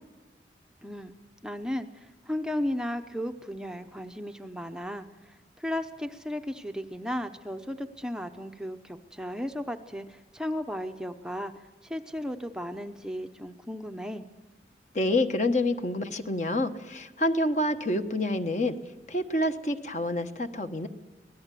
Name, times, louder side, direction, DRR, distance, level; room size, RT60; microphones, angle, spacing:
voice 1, 0.8-1.2 1.4-14.3, left 1 dB, 5° right, 6 dB, 0.7 m, -35 dB
voice 2, 14.9-18.7 19.1-20.9, left 1 dB, 40° left, 8 dB, 1.2 m, -27 dB
25.0 x 18.0 x 8.3 m, 1.2 s
head